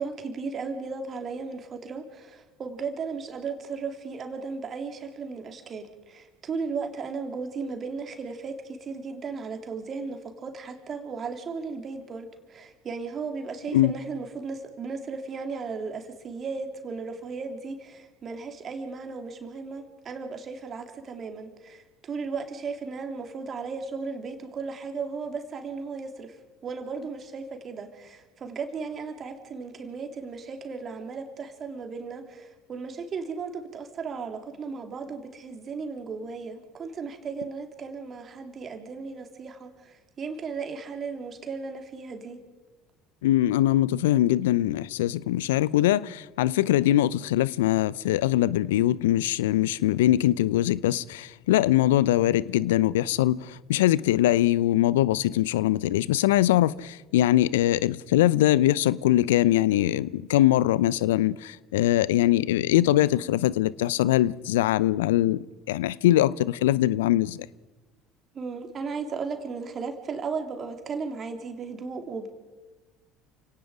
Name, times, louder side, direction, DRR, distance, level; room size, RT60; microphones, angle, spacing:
voice 1, 0.0-26.4 26.6-42.4 68.3-72.3, right 4 dB, 40° right, 3.4 m, -35 dB
voice 2, 43.2-53.4 53.7-65.4 65.7-67.4, left 14 dB, 75° left, 0.6 m, -22 dB
29.5 x 18.0 x 5.1 m
figure-of-eight pair, 65°, 0 cm